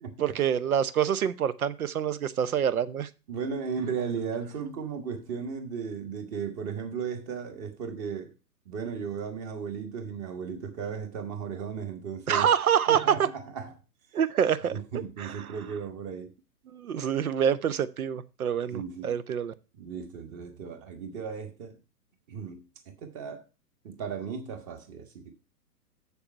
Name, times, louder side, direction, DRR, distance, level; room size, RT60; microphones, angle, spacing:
voice 1, 0.2-3.1 12.3-13.3 14.1-14.7 15.2-15.3 16.7-19.5, right 8 dB, 60° right, 0.9 m, -26 dB
voice 2, 3.3-8.3 8.6-12.5 12.9-13.7 14.7-16.3 18.7-19.1 19.8-21.8 22.3-22.6 22.9-23.4 23.8-25.3, right 6 dB, 25° right, 1.4 m, -35 dB
6.9 x 6.9 x 5.6 m
figure-of-eight pair, 125°, 48 cm